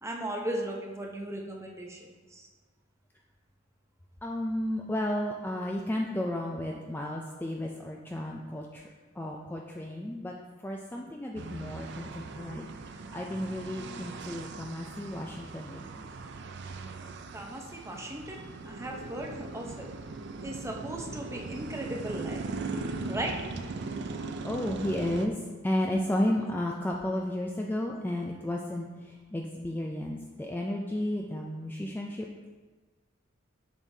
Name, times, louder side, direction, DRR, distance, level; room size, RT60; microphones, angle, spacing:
voice 1, 0.0-2.5 17.3-19.9 20.4-22.4 23.1-23.4, right 1 dB, 15° right, 0 dB, 0.7 m, -37 dB
voice 2, 4.2-8.8 9.2-10.3 10.6-12.7 13.1-15.9 24.4-25.3 25.6-28.9 29.3-32.3, left 1 dB, 10° left, -1 dB, 0.3 m, -32 dB
sound 1, 11.4-25.3, right 3 dB, 60° right, 0.4 m, -39 dB
7.1 x 6.2 x 2.7 m, 1.4 s
head